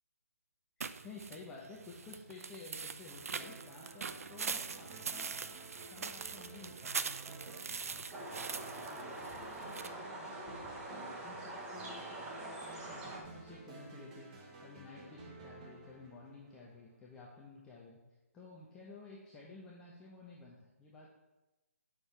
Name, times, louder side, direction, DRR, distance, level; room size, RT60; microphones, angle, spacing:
sound 1, 0.8-9.9, right 5 dB, 70° right, 0.5 m, -42 dB
voice 1, 1.0-5.3 5.9-10.5 10.9-14.3 14.6-18.0 18.3-21.1, left 3 dB, 10° left, -4 dB, 0.8 m, -53 dB
sound 2, 3.4-16.9, right 2 dB, 30° right, 1.3 m, -53 dB
sound 3, 8.1-13.2, right 2 dB, 10° right, 1.1 m, -45 dB
9.1 x 6.4 x 3.4 m, 1.0 s
hypercardioid pair, 155°, 8 cm